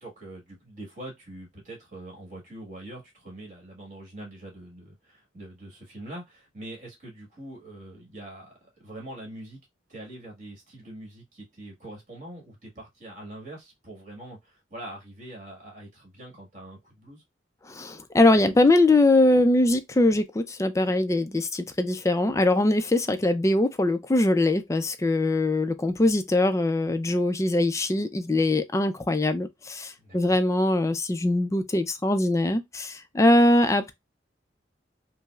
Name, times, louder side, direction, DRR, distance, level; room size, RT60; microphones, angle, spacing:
voice 1, 0.0-9.6 9.9-17.2 30.0-30.4, right 1 dB, 45° right, 1.6 m, -43 dB
voice 2, 17.7-33.9, left 2 dB, 15° left, 0.3 m, -22 dB
5.4 x 2.0 x 2.3 m
head